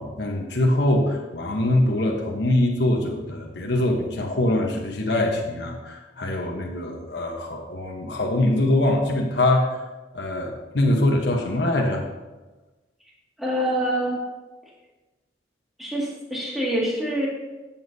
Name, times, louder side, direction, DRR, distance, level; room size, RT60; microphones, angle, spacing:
voice 1, 0.0-9.8 10.1-12.0, left 1 dB, 60° left, 0 dB, 1.1 m, -23 dB
voice 2, 13.4-14.2 15.8-17.3, right 1 dB, ahead, -6 dB, 2.2 m, -25 dB
14.0 x 7.2 x 2.8 m, 1.2 s
head